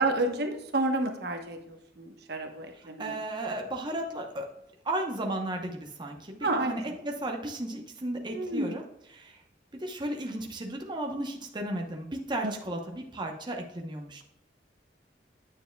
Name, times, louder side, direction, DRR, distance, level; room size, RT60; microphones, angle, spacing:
voice 1, 0.0-3.1 6.4-6.9 8.3-8.7 12.4-12.5, right 2 dB, 65° right, 4 dB, 1.1 m, -30 dB
voice 2, 2.7-4.5 4.8-8.8 9.1-9.4 9.7-14.2, right 1 dB, 25° right, 1 dB, 0.9 m, -34 dB
9.2 x 6.9 x 2.3 m, 0.81 s
head